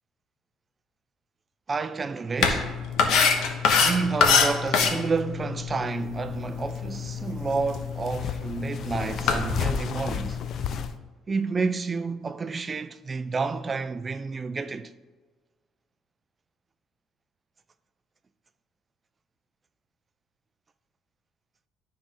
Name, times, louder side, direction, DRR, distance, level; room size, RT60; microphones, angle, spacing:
voice 1, 1.7-2.8 3.8-10.4 11.3-14.9, right 4 dB, 25° right, 0.3 m, -30 dB
sound 1, 2.4-10.9, left 5 dB, 70° left, 0.9 m, -26 dB
sound 2, 5.8-10.9, left 7 dB, 50° left, 0.4 m, -35 dB
11.5 x 3.8 x 3.7 m
cardioid pair, 135°, 0 cm